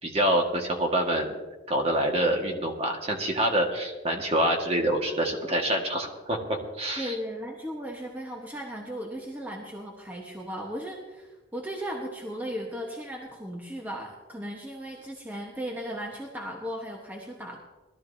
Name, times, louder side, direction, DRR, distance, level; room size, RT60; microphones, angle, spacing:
voice 1, 0.0-1.4 1.7-7.1, right 1 dB, 30° right, 1 dB, 1.8 m, -26 dB
voice 2, 7.0-17.6, equal, 10° right, -1 dB, 1.2 m, -36 dB
21.0 x 13.0 x 2.8 m, 1.2 s
head